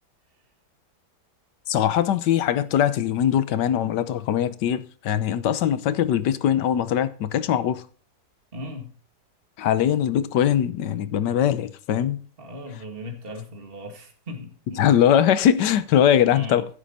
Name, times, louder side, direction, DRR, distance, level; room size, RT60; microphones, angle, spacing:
voice 1, 1.7-7.8 9.6-12.2 14.8-16.7, left 10 dB, 80° left, 1.4 m, -21 dB
voice 2, 8.5-8.9 12.4-14.9 16.3-16.6, left 1 dB, 30° right, 2.4 m, -37 dB
15.5 x 8.0 x 4.2 m
omnidirectional pair, 1.8 m